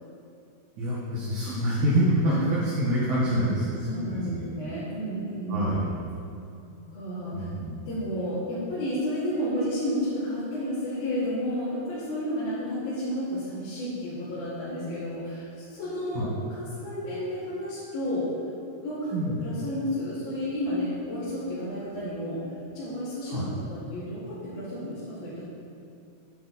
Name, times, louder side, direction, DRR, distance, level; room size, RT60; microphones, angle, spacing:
voice 1, 0.8-4.4 5.5-5.9 7.3-7.7 16.1-16.3 19.1-19.4 23.3-23.5, right 1 dB, 60° right, -8 dB, 2.3 m, -26 dB
voice 2, 3.8-5.8 6.9-7.4 7.9-18.3 18.8-19.1 19.4-22.4 22.7-23.4 23.7-25.4, equal, 60° left, -13 dB, 4.0 m, -31 dB
10.0 x 9.0 x 4.2 m, 2.6 s
omnidirectional pair, 5.0 m